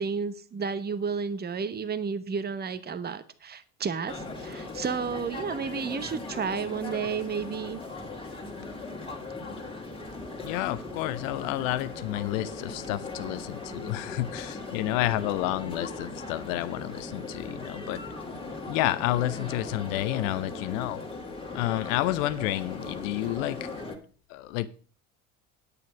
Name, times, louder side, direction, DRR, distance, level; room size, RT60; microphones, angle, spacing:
voice 1, 0.0-7.8, right 6 dB, 25° right, 12 dB, 1.0 m, -32 dB
sound 1, 4.1-24.0, left 3 dB, 15° left, 2.3 m, -38 dB
voice 2, 10.4-18.0 18.7-21.0 21.5-23.7 24.3-24.7, left 15 dB, 65° left, 15 dB, 0.9 m, -30 dB
9.8 x 8.4 x 5.0 m, 0.40 s
hypercardioid pair, 65°, 42 cm